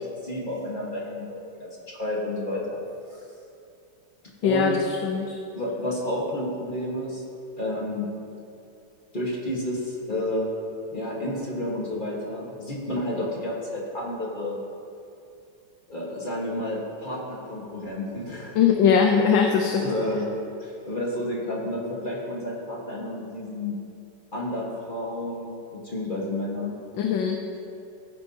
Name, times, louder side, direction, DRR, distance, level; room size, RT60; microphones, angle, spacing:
voice 1, 0.0-2.8 3.1-3.2 4.2-4.7 5.5-7.2 7.6-8.1 9.1-10.5 10.9-14.6 15.9-18.5 19.3-20.3 20.6-23.7 24.3-26.8, left 1 dB, 30° left, -3 dB, 1.5 m, -31 dB
voice 2, 4.4-5.3 18.6-19.9 27.0-27.4, left 6 dB, 90° left, 2 dB, 1.5 m, -21 dB
15.0 x 10.0 x 2.8 m, 2.6 s
omnidirectional pair, 2.0 m